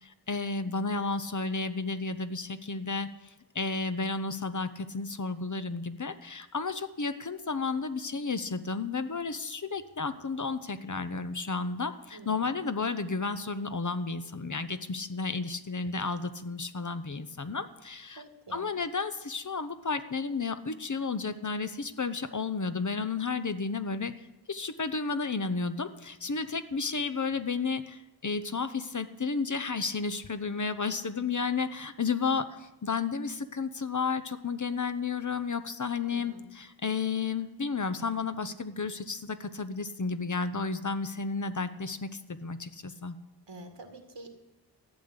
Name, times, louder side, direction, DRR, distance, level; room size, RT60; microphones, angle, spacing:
voice 1, 0.0-3.1 3.5-18.2 18.5-24.1 24.5-43.2, left 4 dB, 45° left, 11 dB, 0.9 m, -32 dB
voice 2, 12.1-12.5 18.2-18.7 36.1-36.4 43.5-44.3, right 2 dB, 85° right, 4 dB, 2.1 m, -47 dB
14.5 x 6.8 x 9.7 m, 1.0 s
wide cardioid pair, 70°, 42 cm